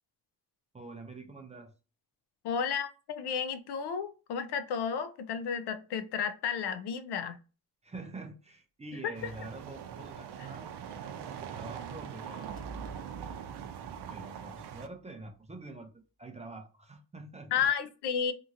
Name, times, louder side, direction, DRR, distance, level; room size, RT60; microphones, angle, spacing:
voice 1, 0.7-1.7 7.8-10.8 11.2-12.7 14.1-15.9 16.2-17.7, right 2 dB, 20° right, 0.4 m, -46 dB
voice 2, 2.4-7.4 9.0-9.3 17.5-18.3, left 7 dB, 80° left, 0.6 m, -32 dB
sound 1, 9.1-14.9, right 8 dB, 80° right, 0.5 m, -42 dB
sound 2, 12.2-15.3, right 2 dB, 35° left, 0.8 m, -50 dB
2.8 x 2.7 x 2.5 m
wide cardioid pair, 170°, 39 cm